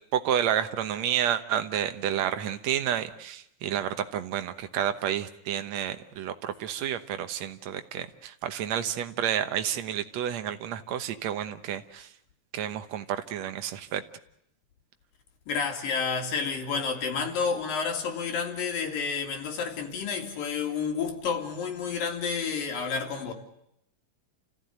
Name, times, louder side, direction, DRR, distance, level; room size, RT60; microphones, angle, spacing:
voice 1, 0.1-12.1 12.5-14.0, right 10 dB, 65° right, 2.1 m, -30 dB
voice 2, 15.5-23.3, left 5 dB, 85° left, 4.3 m, -30 dB
29.5 x 15.0 x 9.5 m
omnidirectional pair, 3.9 m